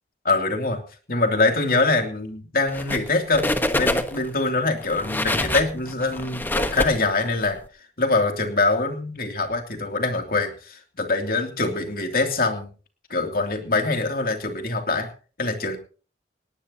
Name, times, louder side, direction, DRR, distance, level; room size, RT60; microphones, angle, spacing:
voice 1, 0.2-0.8 1.1-3.4 3.7-7.6 8.0-12.7 13.1-15.1 15.4-15.8, left 3 dB, 55° left, 4 dB, 2.9 m, -24 dB
sound 1, 2.7-3.1 3.3-4.3 4.8-7.5, left 1 dB, 10° left, 1.2 m, -25 dB
19.0 x 18.0 x 2.9 m, 0.37 s
head